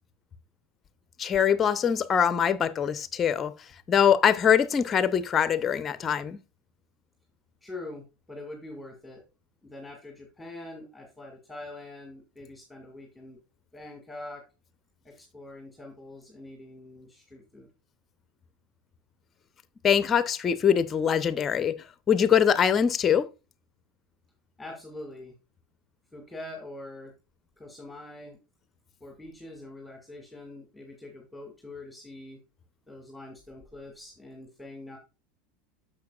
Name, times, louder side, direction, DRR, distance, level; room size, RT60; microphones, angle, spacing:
voice 1, 1.2-3.5 3.9-6.4 19.8-23.3, left 8 dB, 30° left, 0.6 m, -23 dB
voice 2, 7.6-9.3 9.6-13.4 13.7-14.5 15.0-17.7 24.6-25.3 26.1-27.1 27.6-28.4 29.0-32.4 32.9-35.0, left 2 dB, 5° left, 2.0 m, -44 dB
10.5 x 6.9 x 2.3 m
figure-of-eight pair, 80°, 0 cm